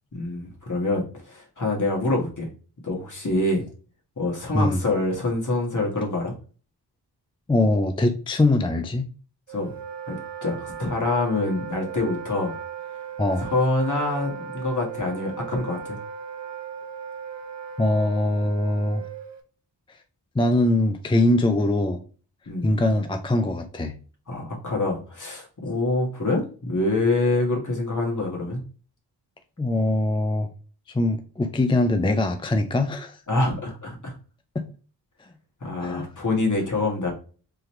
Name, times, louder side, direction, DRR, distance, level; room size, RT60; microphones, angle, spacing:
voice 1, 0.1-2.5 2.8-3.7 4.2-6.3 9.5-9.7 10.1-10.2 10.4-12.5 13.4-16.0 22.5-22.7 24.3-28.6 33.3-34.1 35.6-37.1, left 2 dB, 45° left, -1 dB, 1.6 m, -25 dB
voice 2, 7.5-9.0 13.2-13.5 17.8-19.0 19.9-20.0 20.4-22.0 22.6-24.0 29.6-30.5 30.9-33.2 34.5-34.7 35.8-36.1, left 2 dB, 15° left, 7 dB, 0.3 m, -22 dB
Wind instrument woodwind instrument, 9.5-19.4, right 7 dB, 80° right, 0.8 m, -37 dB
3.8 x 2.9 x 3.1 m, 0.39 s
wide cardioid pair, 65°, 42 cm